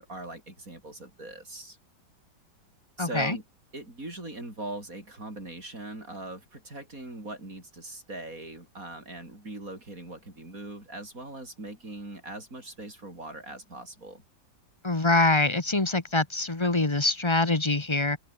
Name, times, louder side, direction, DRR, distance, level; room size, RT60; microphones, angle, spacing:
voice 1, 0.0-1.8 3.0-3.4 3.7-14.2, right 2 dB, 50° right, 7.4 m, -40 dB
voice 2, 3.0-3.4 14.8-18.2, left 2 dB, 15° left, 1.3 m, -24 dB
open air
omnidirectional pair, 1.9 m